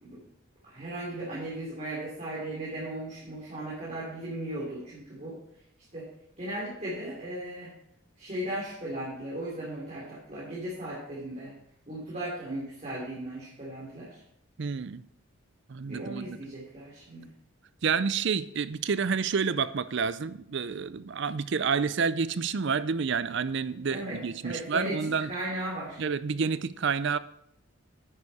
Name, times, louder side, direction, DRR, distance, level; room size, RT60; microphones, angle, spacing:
voice 1, 0.6-5.4 5.9-6.1 6.4-7.7 8.2-11.5 11.9-14.1 15.8-17.3 23.9-26.0, right 1 dB, 35° right, -7 dB, 3.2 m, -37 dB
voice 2, 14.6-15.0 15.7-16.4 17.8-25.3 26.0-27.2, right 5 dB, 55° right, 15 dB, 0.5 m, -29 dB
9.7 x 9.5 x 4.2 m, 0.74 s
head